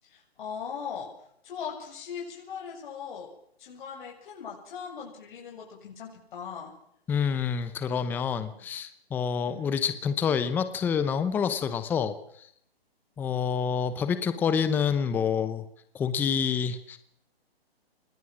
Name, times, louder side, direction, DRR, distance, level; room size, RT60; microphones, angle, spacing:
voice 1, 0.0-1.1 1.4-3.3 3.6-6.7 8.5-8.6 9.5-9.7, left 7 dB, 50° left, -1 dB, 7.5 m, -39 dB
voice 2, 7.1-12.5 13.2-15.6 15.9-17.0, left 7 dB, 5° left, 12 dB, 0.8 m, -27 dB
26.5 x 21.5 x 6.3 m, 0.70 s
hypercardioid pair, 155°, 31 cm